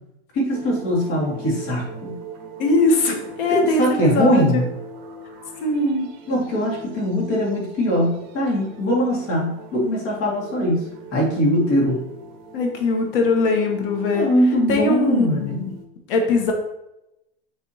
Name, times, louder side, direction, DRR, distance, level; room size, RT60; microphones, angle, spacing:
voice 1, 0.3-2.2 3.5-4.6 6.3-12.0 14.1-15.7, equal, 40° left, -3 dB, 2.1 m, -21 dB
sound 1, 0.5-15.8, right 4 dB, 50° right, 1.4 m, -40 dB
voice 2, 2.6-4.6 5.6-6.1 12.5-14.3 14.7-15.7 16.1-16.5, left 2 dB, 65° left, 3 dB, 1.3 m, -21 dB
9.8 x 3.4 x 2.8 m, 0.88 s
supercardioid pair, 175°, 29 cm